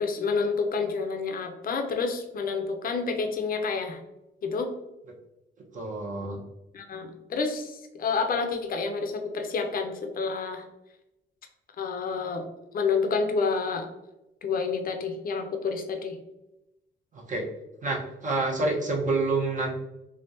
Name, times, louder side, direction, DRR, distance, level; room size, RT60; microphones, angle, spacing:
voice 1, 0.0-4.0 4.4-4.7 6.7-10.6 11.8-12.5 12.7-13.9 14.4-16.2, left 4 dB, 45° left, 5 dB, 0.6 m, -29 dB
voice 2, 5.7-6.4 17.1-17.4 17.8-19.8, right 3 dB, 40° right, -1 dB, 1.0 m, -28 dB
3.4 x 2.4 x 2.7 m, 0.93 s
cardioid pair, 90°, 20 cm